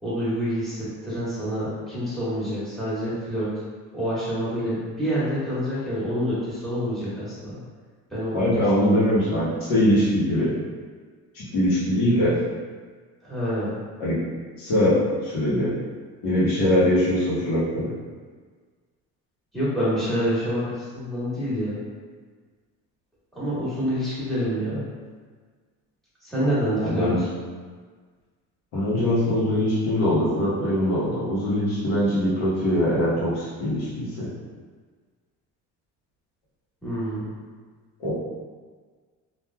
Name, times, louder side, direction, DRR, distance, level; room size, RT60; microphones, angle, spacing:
voice 1, 0.0-3.5 3.9-7.6 8.1-8.5 13.2-13.7 19.5-21.8 23.3-24.8 26.2-27.3 36.8-37.3, equal, ahead, -9 dB, 1.3 m, -27 dB
voice 2, 8.3-10.5 11.3-12.3 14.0-14.2 14.6-15.7 16.2-18.0 26.8-27.2 28.7-34.3 38.0-38.1, left 1 dB, 75° left, -7 dB, 1.2 m, -22 dB
3.2 x 2.6 x 2.2 m, 1.5 s
cardioid pair, 120°, 34 cm